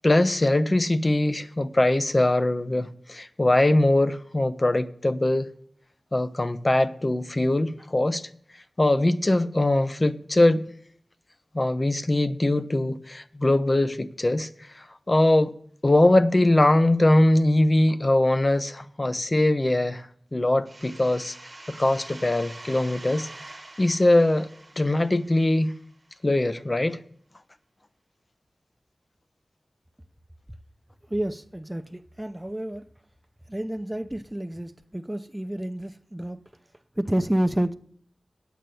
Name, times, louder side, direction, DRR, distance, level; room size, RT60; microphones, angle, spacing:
voice 1, 0.0-5.5 6.1-8.2 8.8-10.7 11.5-14.5 14.7-15.5 15.8-21.4 21.7-23.3 23.8-24.5 24.8-25.7 26.2-27.0, left 1 dB, 35° left, 0.7 m, -22 dB
sound 1, 20.6-26.1, right 2 dB, 35° right, 1.1 m, -45 dB
voice 2, 31.1-32.8 33.5-36.4 37.0-37.7, right 1 dB, 15° right, 0.7 m, -29 dB
9.4 x 7.6 x 6.8 m
wide cardioid pair, 55°, 0 cm